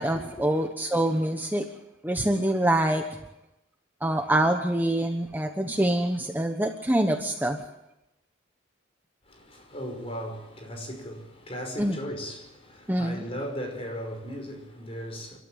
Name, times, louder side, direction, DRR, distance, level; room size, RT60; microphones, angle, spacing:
voice 1, 0.0-1.7 2.0-3.0 4.0-7.6 11.8-11.9 12.9-13.2, right 1 dB, 10° right, 1.1 m, -25 dB
voice 2, 9.2-15.4, equal, 30° left, 5.4 m, -37 dB
29.0 x 13.0 x 8.8 m
head